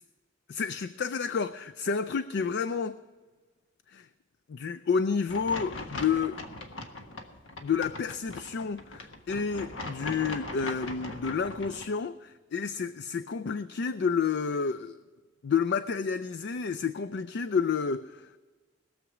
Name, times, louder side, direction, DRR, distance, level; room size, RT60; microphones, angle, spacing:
voice 1, 0.5-3.0 3.9-4.1 4.5-6.4 7.6-15.0 15.4-18.3, left 5 dB, 60° left, 11 dB, 0.4 m, -30 dB
sound 1, 5.3-11.9, left 2 dB, 85° left, 1.4 m, -40 dB
20.5 x 7.2 x 4.9 m, 1.4 s
head